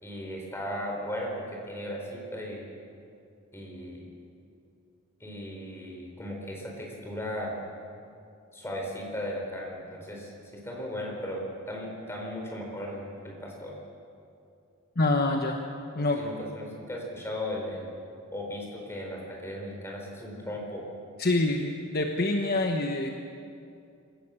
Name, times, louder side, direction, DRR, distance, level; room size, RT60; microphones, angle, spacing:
voice 1, 0.0-2.6 3.5-4.0 5.2-7.6 8.5-13.7 16.1-17.9 18.3-20.8, left 1 dB, 10° left, -1 dB, 4.5 m, -36 dB
voice 2, 15.0-15.6 15.9-16.2 21.2-23.1, left 2 dB, 45° left, 3 dB, 1.2 m, -26 dB
26.0 x 15.5 x 7.1 m, 2.5 s
head